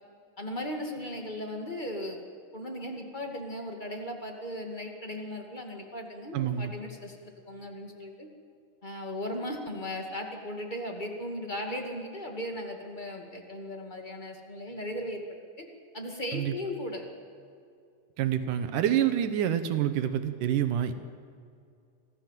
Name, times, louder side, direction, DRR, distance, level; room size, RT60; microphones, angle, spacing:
voice 1, 0.4-2.2 2.5-8.3 8.8-15.2 15.6-15.7 15.9-17.0, left 1 dB, 15° left, 3 dB, 1.9 m, -37 dB
voice 2, 6.3-6.7 16.3-16.5 18.2-20.9, right 10 dB, 75° right, 10 dB, 2.5 m, -27 dB
25.5 x 16.0 x 7.6 m, 2.3 s
omnidirectional pair, 3.8 m